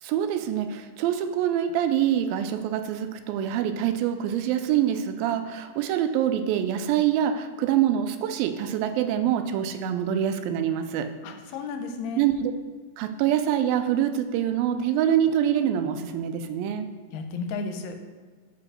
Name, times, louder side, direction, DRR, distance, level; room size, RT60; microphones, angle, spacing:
voice 1, 0.0-11.1 12.2-12.5 13.0-16.9, right 10 dB, 90° right, 9 dB, 2.4 m, -25 dB
voice 2, 11.2-12.2 17.1-18.0, left 4 dB, 85° left, 6 dB, 2.3 m, -33 dB
5.6 x 4.8 x 6.0 m, 1.4 s
omnidirectional pair, 4.1 m